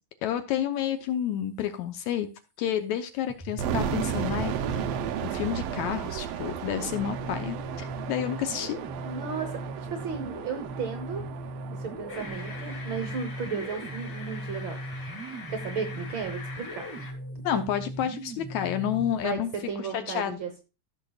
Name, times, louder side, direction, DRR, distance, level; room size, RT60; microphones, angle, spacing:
voice 1, 0.2-2.3 2.6-4.6 5.2-8.8 17.4-19.5 19.9-20.4, left 10 dB, 75° left, 9 dB, 1.9 m, -30 dB
sound 1, 3.3-5.4 6.4-19.3, right 1 dB, 5° left, 1.4 m, -39 dB
sound 2, 3.6-14.5, right 9 dB, 85° right, 1.4 m, -35 dB
voice 2, 9.0-9.6 9.9-11.3 11.7-14.8 15.2-16.9 17.5-17.6 18.9-19.4 19.7-20.6, right 6 dB, 65° right, 6 dB, 1.2 m, -35 dB
sound 3, 12.1-17.1, left 4 dB, 35° left, 2.1 m, -43 dB
15.0 x 6.3 x 2.3 m, 0.29 s
omnidirectional pair, 3.8 m